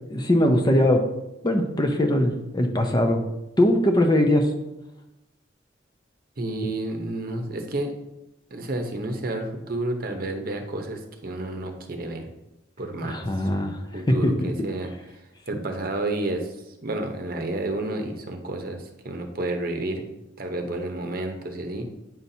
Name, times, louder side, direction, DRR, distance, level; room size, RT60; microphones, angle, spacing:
voice 1, 0.1-1.0 1.4-3.2 3.6-4.5 13.0-13.8 14.1-14.3 14.6-14.7, left 1 dB, 20° left, 4 dB, 0.6 m, -21 dB
voice 2, 6.4-7.9 8.5-12.3 12.8-13.2 13.9-14.9 15.5-16.5 16.8-20.0 20.4-21.8, right 2 dB, 50° right, 4 dB, 0.9 m, -30 dB
9.2 x 5.7 x 2.7 m, 0.93 s
head